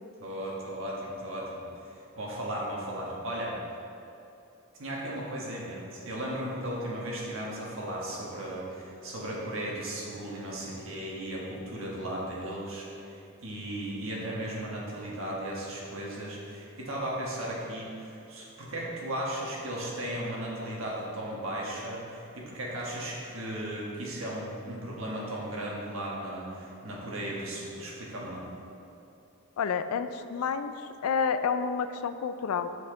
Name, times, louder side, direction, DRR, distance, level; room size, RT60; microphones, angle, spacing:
voice 1, 0.2-1.6 2.2-3.6 4.8-28.5, right 1 dB, 65° right, -4 dB, 1.4 m, -36 dB
voice 2, 29.6-32.7, left 6 dB, 80° left, 10 dB, 0.3 m, -29 dB
6.4 x 5.7 x 3.8 m, 2.8 s
head